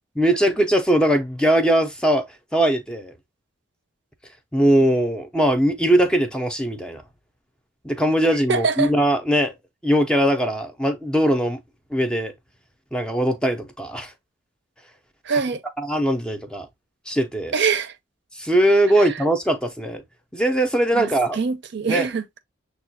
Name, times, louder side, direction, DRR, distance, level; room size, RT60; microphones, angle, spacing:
voice 1, 0.2-2.3 2.5-3.1 4.5-7.0 7.8-9.5 9.8-11.6 11.9-12.3 12.9-14.1 15.8-16.7 17.1-17.5 18.4-20.0 20.3-21.4 21.9-22.1, right 1 dB, 5° left, 0.5 m, -20 dB
voice 2, 8.5-8.9 15.3-15.6 17.5-17.9 19.0-19.1 20.9-22.4, right 5 dB, 60° right, 0.5 m, -24 dB
6.6 x 2.3 x 2.6 m
head